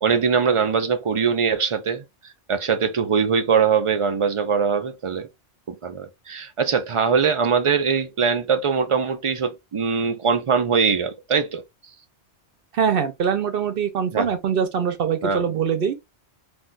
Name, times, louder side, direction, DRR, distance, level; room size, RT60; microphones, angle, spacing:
voice 1, 0.0-2.0 2.5-5.3 5.7-11.6 14.1-14.3 15.2-15.4, right 6 dB, 45° right, 0.4 m, -22 dB
voice 2, 12.7-15.9, right 7 dB, 60° right, 0.8 m, -23 dB
2.6 x 2.3 x 3.8 m
omnidirectional pair, 1.1 m